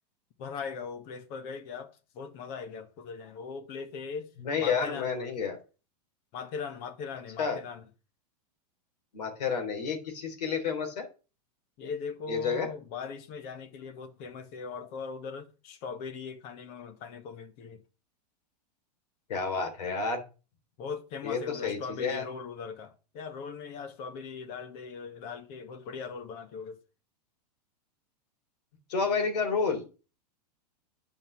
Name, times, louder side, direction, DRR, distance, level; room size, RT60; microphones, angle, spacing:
voice 1, 0.4-4.3 4.6-5.5 6.3-7.9 11.8-17.8 20.8-26.8, left 5 dB, 50° left, 1.9 m, -40 dB
voice 2, 4.4-5.6 7.4-7.6 9.1-11.1 12.3-12.7 19.3-20.2 21.2-22.2 28.9-29.8, left 5 dB, 75° left, 3.4 m, -30 dB
9.4 x 5.4 x 6.0 m
hypercardioid pair, 110°, 21 cm